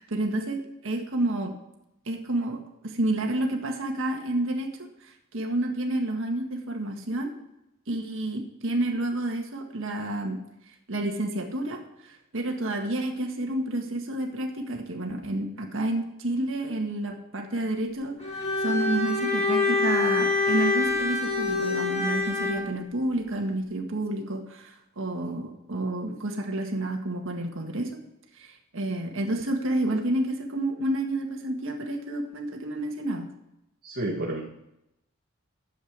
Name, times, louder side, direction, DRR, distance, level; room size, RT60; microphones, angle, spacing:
voice 1, 0.0-1.5 2.1-4.7 5.0-7.3 7.9-10.4 10.9-28.0 28.4-33.3, right 1 dB, 65° right, 2 dB, 1.8 m, -30 dB
Bowed string instrument, 18.2-22.7, left 3 dB, 30° left, 2.4 m, -25 dB
voice 2, 33.8-34.4, right 1 dB, 45° right, -4 dB, 1.9 m, -30 dB
12.0 x 7.8 x 5.0 m, 0.84 s
head